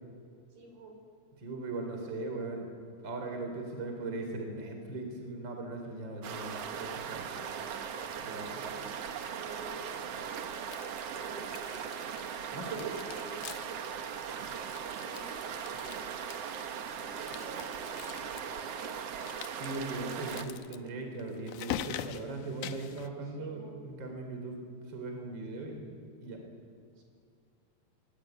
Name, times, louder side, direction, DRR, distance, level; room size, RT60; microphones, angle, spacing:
voice 1, 0.5-1.0 7.3-7.8 8.2-8.9 9.4-11.7 12.6-13.5 14.9-16.1 16.9-18.9 23.2-23.8 26.9-27.0, right 3 dB, 75° right, 3 dB, 6.5 m, -50 dB
voice 2, 1.4-2.7 3.0-7.2 8.2-8.6 12.5-12.9 19.5-24.6 24.9-25.9 26.2-26.4, right 2 dB, 30° right, 3 dB, 4.3 m, -39 dB
sound 1, 6.2-20.5, right 7 dB, 60° right, 1.7 m, -39 dB
sound 2, 10.5-11.1 11.4-12.4 12.7-13.8 14.1-14.2 14.5-16.7 17.2-18.4 19.2-23.1, left 11 dB, 70° left, 2.2 m, -44 dB
25.5 x 24.0 x 9.3 m, 2.3 s
omnidirectional pair, 4.4 m